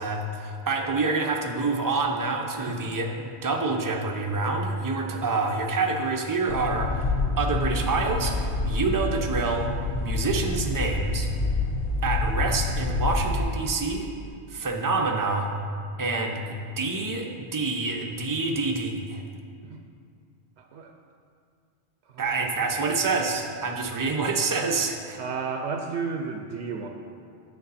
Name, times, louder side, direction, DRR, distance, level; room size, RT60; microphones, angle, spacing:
voice 1, 0.0-9.7 10.0-11.3 12.0-14.1 14.5-15.5 16.0-19.2 22.2-25.2, right 3 dB, 25° right, 1 dB, 0.6 m, -27 dB
sound 1, 6.5-13.4, left 3 dB, 90° left, 1.1 m, -27 dB
voice 2, 20.6-20.9 22.0-22.5 23.9-24.0 25.2-26.9, right 5 dB, 90° right, 3 dB, 0.9 m, -33 dB
9.4 x 6.7 x 4.1 m, 2.3 s
omnidirectional pair, 1.1 m